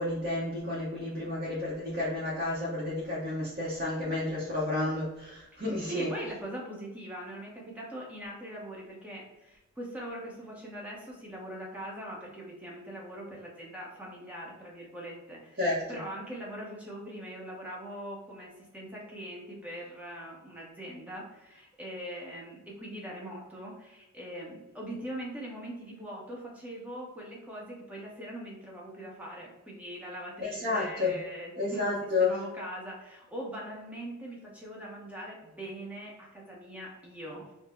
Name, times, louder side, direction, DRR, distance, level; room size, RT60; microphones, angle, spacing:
voice 1, 0.0-6.1 15.6-15.8 30.4-31.2 31.6-32.3, left 2 dB, 40° right, -6 dB, 0.8 m, -31 dB
voice 2, 5.9-31.9 32.2-37.5, right 1 dB, 5° right, -3 dB, 0.8 m, -42 dB
4.0 x 2.1 x 4.2 m, 0.99 s
head